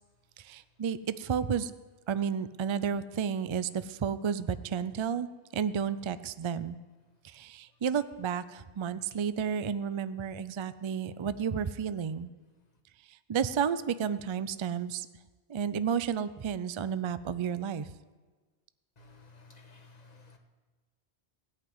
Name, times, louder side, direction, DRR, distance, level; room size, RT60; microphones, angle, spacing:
voice 1, 0.4-1.7 2.1-5.3 5.5-6.8 7.2-12.3 13.3-15.1 15.5-17.9, right 7 dB, 50° right, 14 dB, 0.3 m, -32 dB
voice 2, 19.0-20.4, left 3 dB, 40° left, 3 dB, 1.5 m, -55 dB
16.5 x 5.8 x 9.4 m, 1.3 s
omnidirectional pair, 1.1 m